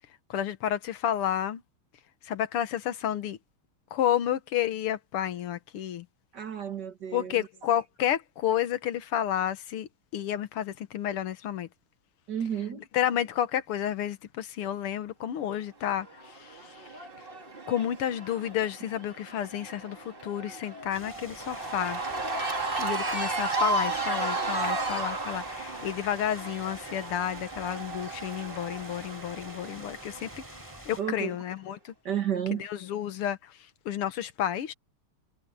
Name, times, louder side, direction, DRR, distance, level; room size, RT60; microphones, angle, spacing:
voice 1, 0.3-1.6 2.2-3.4 3.9-6.1 7.1-11.7 12.9-17.0 17.7-22.0 22.8-30.4 30.9-31.9 32.6-33.6 33.9-34.7, left 10 dB, 85° left, 2.1 m, -31 dB
voice 2, 6.3-7.4 12.3-12.9 31.0-31.3 32.1-32.6, right 9 dB, 50° right, 2.2 m, -31 dB
Cheering / Crowd, 15.9-31.2, right 3 dB, 25° right, 2.4 m, -34 dB
sound 1, 20.9-31.0, right 1 dB, 10° right, 5.1 m, -48 dB
omnidirectional pair, 2.4 m